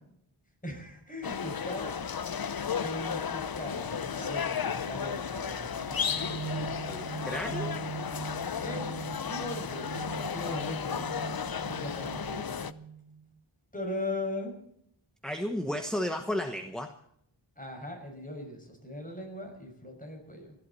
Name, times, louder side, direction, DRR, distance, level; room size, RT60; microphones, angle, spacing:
voice 1, 0.6-2.4 2.7-5.9 8.5-8.9 9.2-11.2 11.6-12.7 13.7-14.5 17.6-20.5, left 1 dB, 15° left, 3 dB, 6.2 m, -39 dB
sound 1, 1.2-12.7, left 7 dB, 50° left, 0.7 m, -34 dB
sound 2, 5.5-13.3, right 7 dB, 55° right, 1.5 m, -42 dB
voice 2, 6.8-7.8 15.2-16.9, left 1 dB, ahead, 6 dB, 1.1 m, -33 dB
29.0 x 12.0 x 4.2 m, 0.72 s
wide cardioid pair, 80°, 47 cm